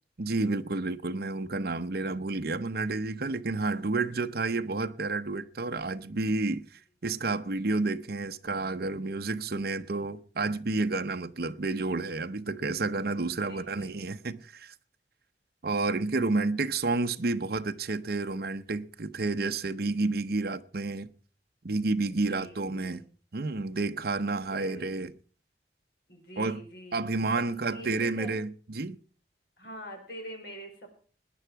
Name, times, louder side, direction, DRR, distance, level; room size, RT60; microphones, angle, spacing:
voice 1, 0.2-6.6 7.0-14.7 15.6-21.1 21.6-23.0 23.3-25.1 26.4-26.6 26.9-29.0, right 3 dB, 60° right, 0.8 m, -30 dB
voice 2, 13.2-13.9 22.1-23.0 24.5-24.9 26.1-27.0 27.3-28.4 29.6-30.9, equal, 65° left, 4.7 m, -45 dB
18.5 x 10.0 x 4.6 m
head